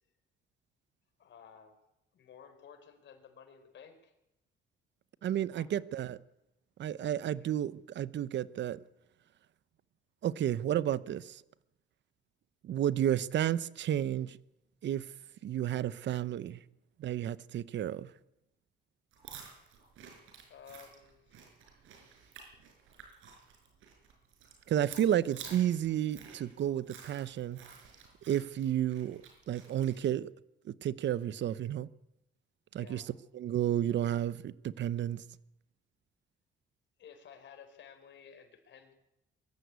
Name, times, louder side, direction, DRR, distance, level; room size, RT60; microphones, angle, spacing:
voice 1, 1.2-1.7 2.1-4.1 5.6-5.7 7.2-7.5 20.5-21.5 32.7-33.1 37.0-38.9, left 7 dB, 70° left, 4.3 m, -54 dB
voice 2, 5.2-6.2 6.8-8.8 10.2-11.4 12.6-14.4 14.8-15.1 15.4-16.6 17.0-18.1 24.7-27.6 28.3-29.2 29.5-30.3 30.6-31.9 32.7-33.0 33.3-35.2, right 11 dB, 65° right, 0.9 m, -31 dB
sound 1, 19.1-30.0, right 6 dB, 90° right, 5.5 m, -52 dB
23.0 x 14.5 x 8.2 m
cardioid pair, 90°, 20 cm